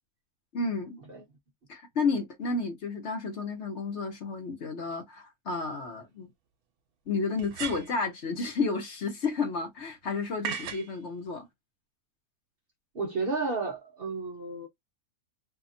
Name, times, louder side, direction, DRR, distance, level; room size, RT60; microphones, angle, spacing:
voice 1, 0.5-1.0 1.7-6.3 7.1-11.5, left 4 dB, 55° left, 1.0 m, -31 dB
sound 1, 5.5-5.6 7.4-8.1 10.4-10.9, right 7 dB, 80° right, 1.1 m, -36 dB
voice 2, 12.9-14.7, right 3 dB, 50° right, 0.8 m, -32 dB
2.8 x 2.3 x 2.4 m
omnidirectional pair, 1.5 m